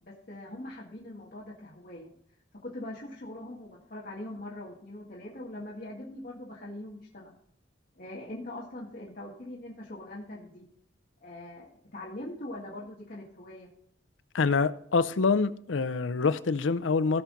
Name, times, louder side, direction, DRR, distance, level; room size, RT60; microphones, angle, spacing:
voice 1, 0.0-2.1 2.6-7.3 8.0-10.6 11.2-13.7, left 1 dB, 50° left, 1.8 m, -42 dB
voice 2, 14.3-17.2, left 4 dB, 80° left, 0.6 m, -26 dB
17.0 x 5.9 x 3.9 m
head